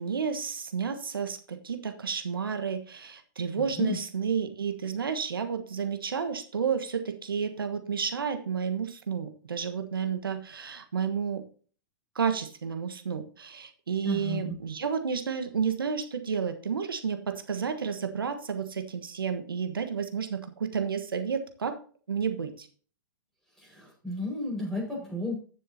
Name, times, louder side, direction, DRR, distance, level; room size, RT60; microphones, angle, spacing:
voice 1, 0.0-11.4 12.1-21.8 22.1-22.7, right 6 dB, 85° right, 7 dB, 1.4 m, -31 dB
voice 2, 3.5-4.0 14.0-14.5 23.6-25.3, left 2 dB, 5° left, -3 dB, 5.5 m, -33 dB
14.0 x 7.3 x 2.9 m, 0.41 s
hypercardioid pair, 110°, 11 cm